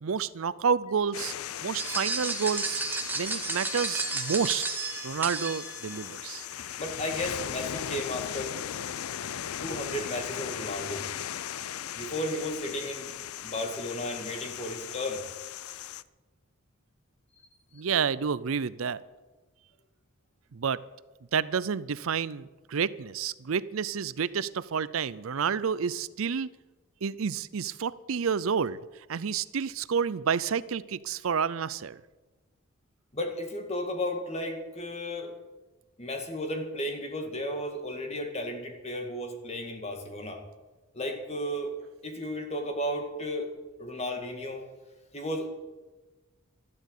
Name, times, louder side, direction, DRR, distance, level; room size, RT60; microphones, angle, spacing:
voice 1, 0.0-1.3 1.6-2.8 3.1-4.6 5.0-6.5 17.7-19.0 20.5-20.8 21.3-26.5 27.0-28.8 29.1-32.0, right 6 dB, 70° right, 17 dB, 0.5 m, -29 dB
sound 1, 1.1-16.0, left 10 dB, 85° left, 0.5 m, -38 dB
sound 2, 1.8-6.0, right 3 dB, 10° right, 1.7 m, -32 dB
voice 2, 6.8-8.5 9.6-11.1 12.0-13.1 13.4-15.2 33.1-35.3 36.0-40.4 40.9-41.8 42.0-43.5 43.8-44.7 45.1-45.5, left 1 dB, 30° left, 4 dB, 2.0 m, -34 dB
13.0 x 12.0 x 8.3 m, 1.2 s
head